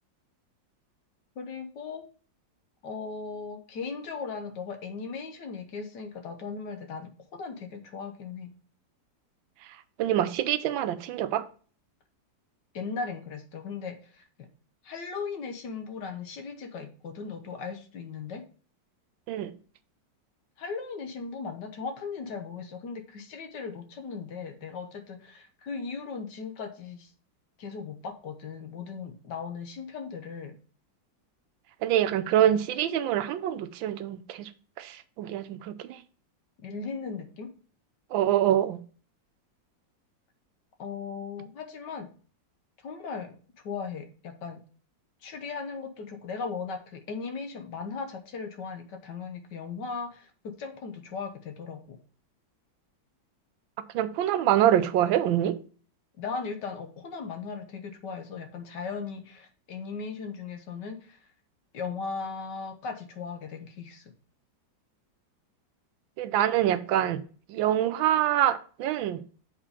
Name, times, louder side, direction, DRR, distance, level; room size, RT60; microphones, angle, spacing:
voice 1, 1.4-2.1 2.8-8.5 12.7-14.5 14.8-18.4 20.6-27.1 27.6-30.6 36.6-37.5 40.8-42.1 42.8-43.4 43.6-44.6 45.2-52.0 56.2-61.2 61.7-64.1, left 5 dB, 65° left, 1.6 m, -37 dB
voice 2, 10.0-11.4 19.3-19.5 31.8-34.5 34.8-36.0 38.1-38.8 53.9-55.6 66.2-67.2 67.5-69.2, right 11 dB, 85° right, 1.4 m, -25 dB
7.5 x 4.2 x 4.9 m
omnidirectional pair, 2.1 m